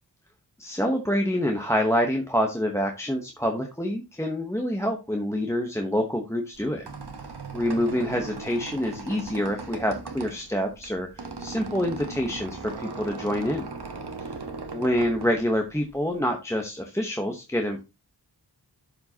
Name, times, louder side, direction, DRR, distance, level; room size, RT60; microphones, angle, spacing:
voice 1, 0.6-6.9 7.5-13.7 14.2-14.3 14.7-17.8, equal, 5° left, 2 dB, 1.0 m, -27 dB
Squeak, 6.5-16.2, right 4 dB, 70° right, 1.3 m, -38 dB
12.0 x 4.8 x 2.9 m, 0.26 s
wide cardioid pair, 75°, 42 cm